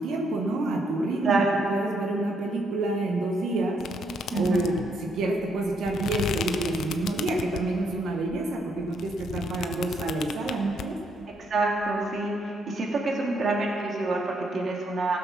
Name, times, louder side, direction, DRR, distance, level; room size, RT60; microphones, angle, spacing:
voice 1, 0.0-1.4 1.7-3.8 4.3-11.0, right 2 dB, 75° right, 2 dB, 1.1 m, -28 dB
sound 1, 3.8-7.8 8.3-10.8, left 8 dB, 70° left, 0.6 m, -34 dB
voice 2, 4.3-4.7 11.3-15.2, right 2 dB, 50° right, -1 dB, 2.1 m, -27 dB
15.5 x 6.8 x 5.8 m, 2.7 s
cardioid pair, 90°, 0 cm